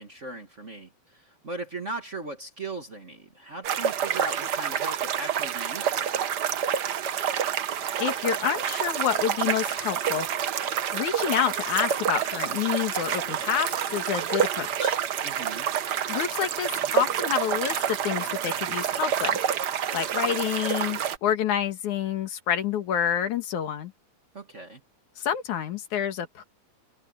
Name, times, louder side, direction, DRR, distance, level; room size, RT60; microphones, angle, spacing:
voice 1, 0.0-6.3 15.2-15.7 24.3-24.8, right 2 dB, 30° right, 1.5 m, -38 dB
sound 1, 3.6-21.2, right 8 dB, 85° right, 0.9 m, -28 dB
voice 2, 8.0-10.3 10.9-15.0 16.1-19.4 19.9-23.9 25.2-26.4, left 9 dB, 85° left, 3.2 m, -28 dB
omnidirectional pair, 3.3 m